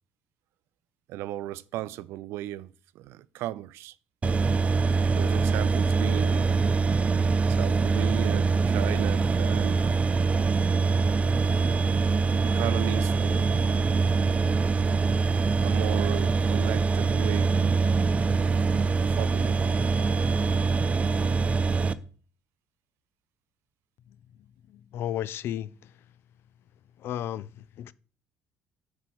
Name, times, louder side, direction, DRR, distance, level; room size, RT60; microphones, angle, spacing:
voice 1, 1.1-4.0 5.1-6.8 7.5-9.9 11.6-11.9 12.4-13.5 15.6-17.6 19.0-19.9, right 15 dB, 80° right, 0.4 m, -36 dB
sound 1, 4.2-21.9, right 4 dB, 30° right, 0.6 m, -24 dB
voice 2, 24.7-25.9 27.0-27.9, left 11 dB, 70° left, 0.4 m, -34 dB
9.5 x 4.3 x 6.3 m
cardioid pair, 85°, 4 cm